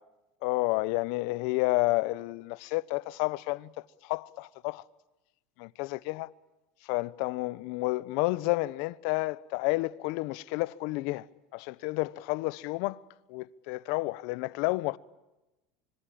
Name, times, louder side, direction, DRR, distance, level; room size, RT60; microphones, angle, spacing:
voice 1, 0.4-3.7 4.0-4.8 5.6-6.3 6.8-11.3 11.5-13.0 13.3-15.0, left 21 dB, 70° left, 1.0 m, -30 dB
25.5 x 25.0 x 8.8 m
supercardioid pair, 135°, 0 cm